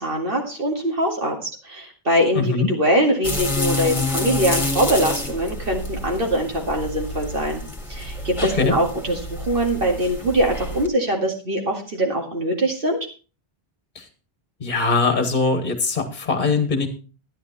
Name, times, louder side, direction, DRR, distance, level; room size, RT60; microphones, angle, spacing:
voice 1, 0.0-7.6 7.9-13.0, right 1 dB, 60° right, 1 dB, 2.4 m, -22 dB
voice 2, 2.3-2.7 8.5-8.7 13.9-14.1 14.6-16.9, left 4 dB, 45° left, 7 dB, 1.6 m, -21 dB
sound 1, 3.2-10.9, left 2 dB, 30° left, 2.0 m, -28 dB
11.5 x 10.0 x 4.2 m, 0.35 s
omnidirectional pair, 1.0 m